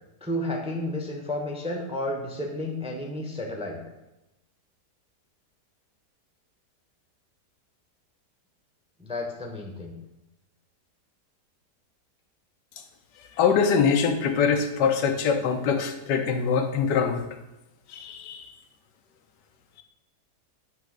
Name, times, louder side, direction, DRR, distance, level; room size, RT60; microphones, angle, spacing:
voice 1, 0.2-3.8 9.0-10.0, left 1 dB, 5° right, 1 dB, 0.7 m, -32 dB
voice 2, 13.4-17.2 17.9-18.4, left 6 dB, 85° left, 7 dB, 1.4 m, -23 dB
9.0 x 3.5 x 6.4 m, 0.93 s
omnidirectional pair, 1.8 m